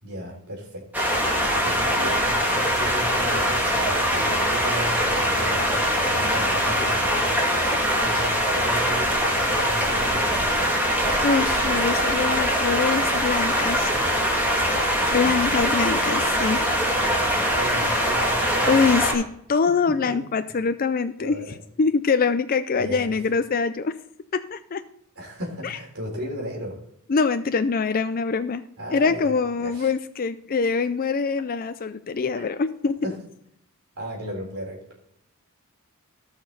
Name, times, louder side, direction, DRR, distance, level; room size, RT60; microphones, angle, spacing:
voice 1, 0.0-7.7 8.0-10.8 15.2-15.4 17.1-18.9 19.9-20.2 21.2-21.6 22.8-23.0 25.2-26.8 28.8-29.9 32.3-32.4 33.0-33.2 34.0-34.9, equal, 70° right, -1 dB, 3.8 m, -35 dB
sound 1, 0.9-19.1, equal, 10° right, 2.6 m, -22 dB
voice 2, 11.2-13.9 15.1-16.6 18.7-23.9 24.3-24.8 25.6-25.8 27.1-28.6 28.9-33.0, left 5 dB, 40° left, 10 dB, 0.4 m, -24 dB
17.5 x 6.0 x 4.0 m, 0.72 s
head